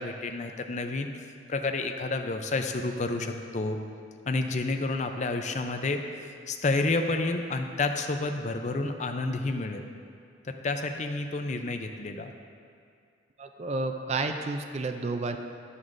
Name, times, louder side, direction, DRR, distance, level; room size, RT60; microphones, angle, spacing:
voice 1, 0.0-3.8 4.3-9.8 10.4-12.3, left 3 dB, 40° left, 5 dB, 0.5 m, -30 dB
voice 2, 13.4-15.4, right 3 dB, 35° right, 6 dB, 0.4 m, -31 dB
10.5 x 9.7 x 2.6 m, 2.4 s
head